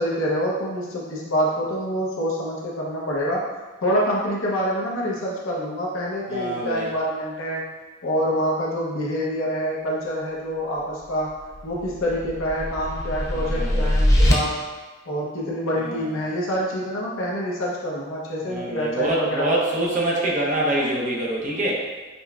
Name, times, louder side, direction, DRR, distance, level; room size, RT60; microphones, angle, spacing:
voice 1, 0.0-3.4 3.8-7.7 8.0-11.3 11.6-14.5 15.1-19.5, equal, 75° left, -4 dB, 0.8 m, -26 dB
voice 2, 6.3-6.9 13.4-13.9 15.8-16.0 18.5-21.9, right 1 dB, 40° right, -3 dB, 0.6 m, -25 dB
sound 1, 11.5-14.3, equal, 15° left, 0.4 m, -22 dB
5.3 x 2.1 x 2.3 m, 1.3 s
head